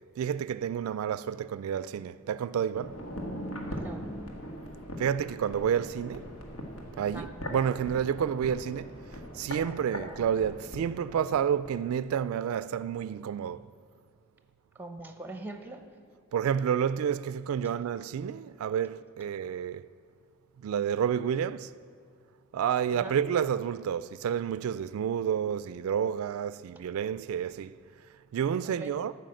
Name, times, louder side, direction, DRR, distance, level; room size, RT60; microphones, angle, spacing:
voice 1, 0.2-3.0 5.0-6.3 7.0-9.0 9.3-13.7 16.3-19.8 20.6-21.7 22.5-27.8 28.3-29.1, right 8 dB, 90° right, 0.3 m, -30 dB
sound 1, 2.7-11.8 12.0-12.1, equal, 90° left, 1.6 m, -41 dB
voice 2, 3.7-4.1 7.1-7.3 14.7-15.8 17.6-17.7 23.0-23.1 28.6-28.9, right 2 dB, 10° right, 0.8 m, -42 dB
13.0 x 5.8 x 7.6 m
head